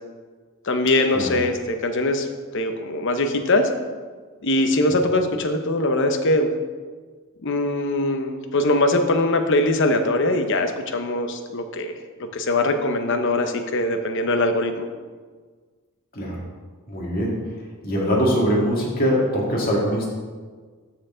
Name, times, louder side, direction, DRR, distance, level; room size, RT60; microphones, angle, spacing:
voice 1, 0.6-2.3 2.5-3.7 4.4-6.5 7.4-11.9 12.3-14.9, left 2 dB, 60° left, 6 dB, 0.8 m, -22 dB
voice 2, 16.1-16.5 16.9-17.5 17.8-20.1, equal, 45° left, -3 dB, 2.0 m, -22 dB
13.0 x 4.5 x 3.8 m, 1.5 s
head